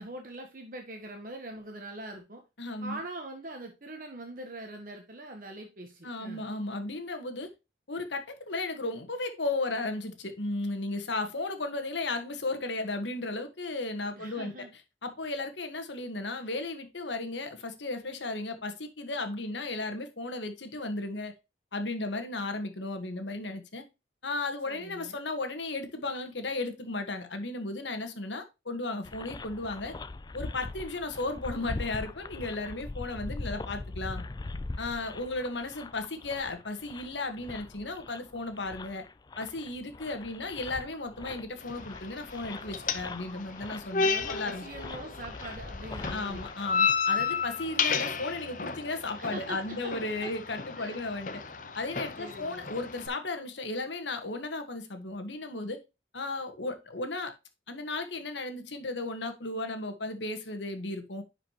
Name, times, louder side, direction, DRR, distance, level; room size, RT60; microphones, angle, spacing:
voice 1, 0.0-2.4 2.8-6.5 14.2-14.7 24.7-25.2 44.0-46.4 49.2-49.9 50.2-50.3 50.8-51.0 51.3-51.4 52.2-52.7, right 2 dB, 50° right, 1.2 m, -43 dB
voice 2, 2.6-3.0 6.0-7.5 7.9-14.5 15.0-21.3 21.7-23.8 24.2-29.9 30.3-34.2 34.8-39.0 39.4-44.6 46.1-51.4 51.7-55.8 56.1-57.3 57.7-61.2, left 2 dB, 85° left, 1.5 m, -35 dB
sound 1, 29.0-46.5, left 2 dB, 20° left, 0.3 m, -42 dB
sound 2, 41.6-53.1, left 5 dB, 45° left, 0.8 m, -33 dB
10.5 x 5.0 x 3.0 m
head